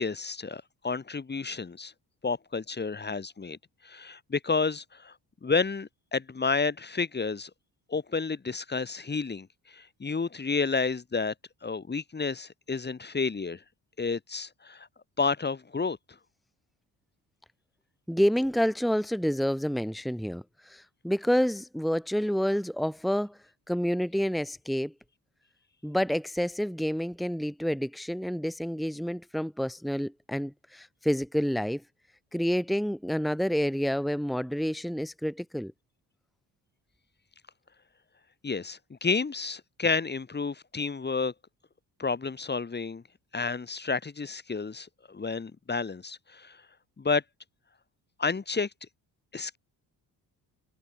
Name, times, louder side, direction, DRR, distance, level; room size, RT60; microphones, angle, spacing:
voice 1, 0.0-1.9 2.2-3.6 3.8-5.1 5.4-7.5 7.9-11.3 11.6-13.6 14.0-14.9 15.2-16.0 38.4-41.3 42.0-43.0 43.3-46.6 47.0-47.2 48.2-48.7 49.3-49.6, left 4 dB, 25° left, 1.9 m, -30 dB
voice 2, 18.1-23.4 23.7-24.9 25.8-31.8 32.3-35.7, equal, ahead, 1.6 m, -28 dB
cardioid pair, 100°, 39 cm